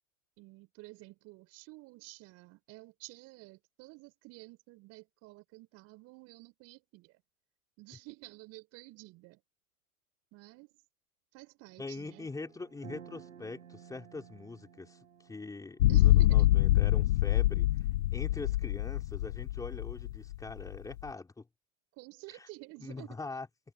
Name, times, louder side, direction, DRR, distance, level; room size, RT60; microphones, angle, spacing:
voice 1, 0.4-7.1 7.8-9.4 10.3-10.7 11.3-12.3 15.9-16.5 22.0-23.2, right 22 dB, 35° right, 4.6 m, -51 dB
voice 2, 11.8-17.7 18.1-21.5 22.3-22.5 22.8-23.5, left 3 dB, 10° left, 4.6 m, -43 dB
sound 1, 12.1-16.6, right 8 dB, 70° right, 6.5 m, -54 dB
sound 2, 15.8-21.0, left 15 dB, 50° left, 0.9 m, -25 dB
figure-of-eight pair, 110°, 42 cm